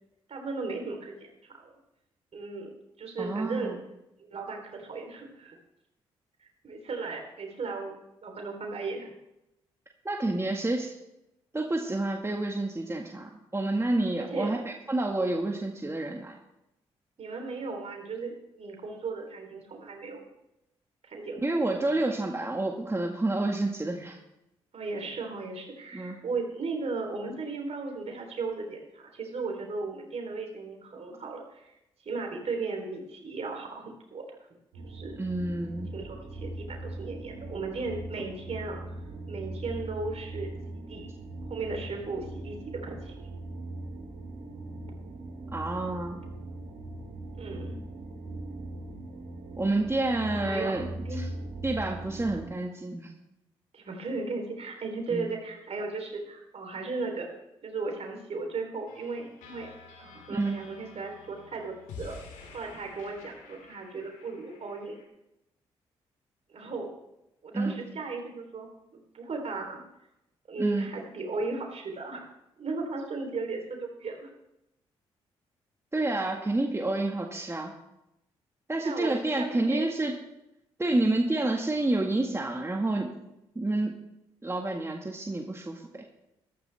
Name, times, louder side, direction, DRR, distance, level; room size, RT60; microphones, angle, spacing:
voice 1, 0.3-1.7 2.3-2.7 3.0-3.8 4.2-5.6 6.6-7.9 8.2-9.1 14.2-14.7 17.2-20.3 21.0-21.4 24.7-31.8 32.0-34.2 34.8-35.2 35.9-38.8 39.3-40.5 40.9-41.1 41.5-43.3 47.3-47.8 50.3-50.8 51.1-51.2 52.2-52.4 53.7-57.3 57.6-59.7 60.0-62.2 62.5-65.0 66.5-66.9 67.4-69.8 70.5-72.3 72.6-74.3 78.8-79.8, right 3 dB, 50° right, 2 dB, 3.7 m, -36 dB
voice 2, 3.2-3.8 10.0-11.0 11.5-16.3 21.4-24.2 25.9-26.2 35.2-35.9 45.5-46.2 49.6-50.9 51.2-51.3 51.6-53.1 55.1-55.3 60.3-60.6 67.5-67.8 70.6-70.9 75.9-77.7 78.7-80.1 80.8-83.1 83.5-83.9 84.4-86.0, right 2 dB, 20° right, 2 dB, 1.8 m, -29 dB
sound 1, 34.7-52.5, right 2 dB, 80° right, 4.1 m, -40 dB
sound 2, 58.9-65.1, left 5 dB, 75° left, 2.6 m, -49 dB
14.0 x 13.5 x 3.5 m, 0.87 s
hypercardioid pair, 40°, 13 cm